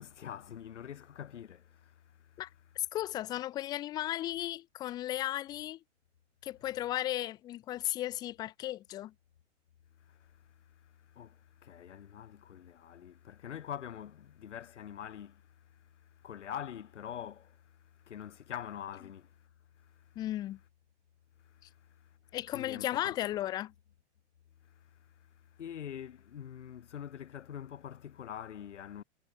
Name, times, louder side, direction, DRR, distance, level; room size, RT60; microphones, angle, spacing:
voice 1, 0.0-2.4 10.0-10.4 10.8-15.9 16.2-19.5 19.8-20.2 21.5-22.1 22.5-23.2 24.6-25.1 25.5-29.0, left 9 dB, 80° left, 5.8 m, -45 dB
voice 2, 2.9-5.8 6.4-9.1 20.2-20.6 22.3-23.7, left 13 dB, 10° left, 0.8 m, -35 dB
hypercardioid pair, 170°, 35 cm